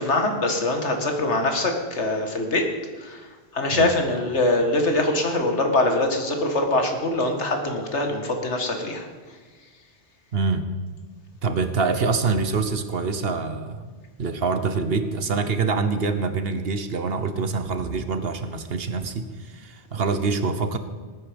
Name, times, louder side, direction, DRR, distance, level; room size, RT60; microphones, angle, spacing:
voice 1, 0.0-2.7 3.0-3.2 3.5-9.1, left 2 dB, 80° left, 4 dB, 2.1 m, -23 dB
voice 2, 10.3-10.7 11.4-13.9 14.2-20.8, right 4 dB, 60° right, 10 dB, 1.2 m, -25 dB
19.0 x 9.6 x 5.2 m, 1.4 s
omnidirectional pair, 1.2 m